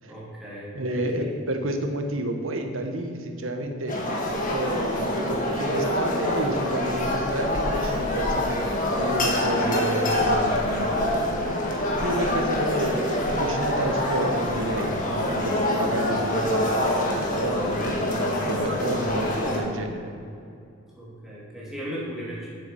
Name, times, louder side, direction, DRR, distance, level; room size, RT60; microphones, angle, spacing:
voice 1, 0.0-1.3 15.8-16.0 20.9-22.5, equal, ahead, -8 dB, 2.8 m, -37 dB
voice 2, 0.7-4.0 4.5-8.6 8.9-11.0 12.0-15.0 15.2-20.1, right 1 dB, 65° right, 5 dB, 1.1 m, -30 dB
sound 1, 3.9-19.6, left 1 dB, 40° left, 1.7 m, -25 dB
7.8 x 7.6 x 7.0 m, 2.5 s
head